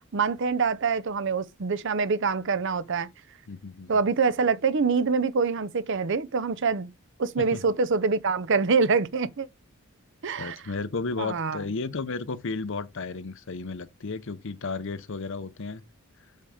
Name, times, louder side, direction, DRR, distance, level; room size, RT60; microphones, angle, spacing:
voice 1, 0.1-3.1 3.9-6.9 7.2-9.5 10.2-10.6 11.2-11.6, right 4 dB, 55° right, 0.6 m, -25 dB
voice 2, 3.5-4.0 7.4-7.6 10.4-15.8, left 4 dB, 60° left, 0.7 m, -33 dB
6.3 x 5.6 x 5.0 m
head